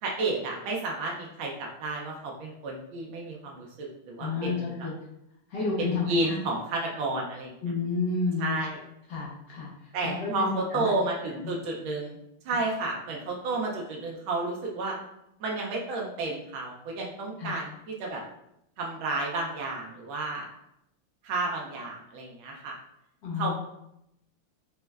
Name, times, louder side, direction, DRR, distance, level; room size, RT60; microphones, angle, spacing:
voice 1, 0.0-4.7 5.9-7.5 8.4-8.8 9.9-12.2 12.4-15.0 15.4-18.2 18.8-20.5 21.2-22.8 23.4-23.5, right 2 dB, 75° right, -1 dB, 1.3 m, -31 dB
voice 2, 4.2-4.9 5.5-6.4 7.6-8.6 9.1-9.7 10.0-10.9 11.4-11.5 17.4-17.6 23.2-23.5, left 4 dB, 65° left, -5 dB, 1.2 m, -30 dB
5.2 x 2.1 x 2.3 m, 0.80 s
omnidirectional pair, 2.4 m